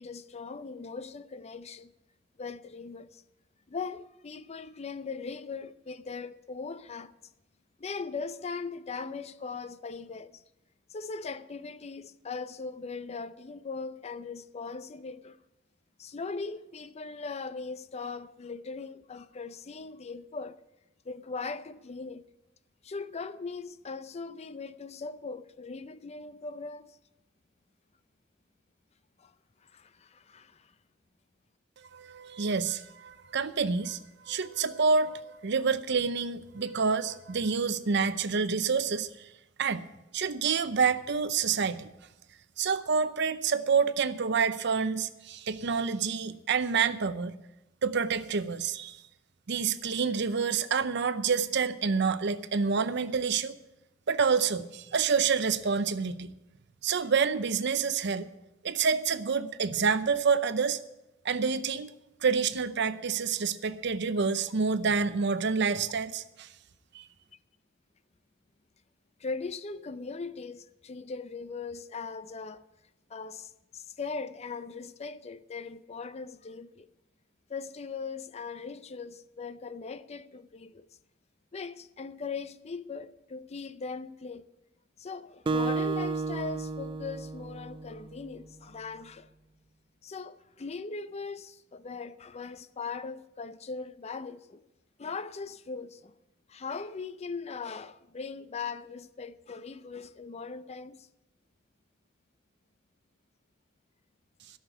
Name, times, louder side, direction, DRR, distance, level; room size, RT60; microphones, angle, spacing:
voice 1, 0.0-1.9 2.4-3.2 3.7-7.1 7.8-10.4 10.9-15.4 16.0-20.6 21.0-22.2 22.8-27.0 29.2-29.3 29.6-30.7 69.2-72.6 73.1-76.9 77.5-80.9 81.5-84.4 85.0-89.3 90.0-94.6 95.0-96.1 96.5-101.1, left 4 dB, 35° left, 0.5 m, -39 dB
voice 2, 31.9-39.3 39.6-39.8 40.1-41.9 42.6-47.3 47.8-49.0 49.5-53.5 54.1-56.3 56.8-58.3 58.6-60.8 61.2-61.9 62.2-66.5 66.9-67.0, right 5 dB, 60° right, 0.6 m, -28 dB
Acoustic guitar, 85.5-88.2, right 3 dB, 25° right, 0.4 m, -32 dB
12.5 x 6.6 x 9.1 m
head